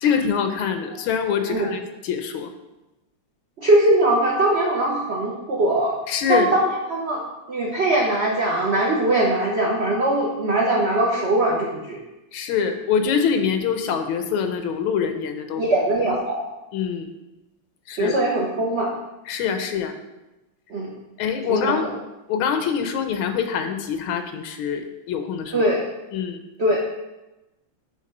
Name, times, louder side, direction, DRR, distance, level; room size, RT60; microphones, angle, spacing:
voice 1, 0.0-2.5 6.1-6.5 12.3-15.6 16.7-17.1 17.9-18.1 19.3-20.0 21.2-21.9 22.3-25.6 26.1-26.4, left 7 dB, 80° left, 7 dB, 1.4 m, -24 dB
voice 2, 3.6-5.9 6.3-7.2 7.5-12.0 15.6-16.4 17.9-18.9 20.7-20.9 21.5-21.9 25.5-25.9 26.6-26.8, right 1 dB, 90° right, -2 dB, 0.5 m, -21 dB
6.5 x 3.2 x 5.3 m, 1.0 s
omnidirectional pair, 2.3 m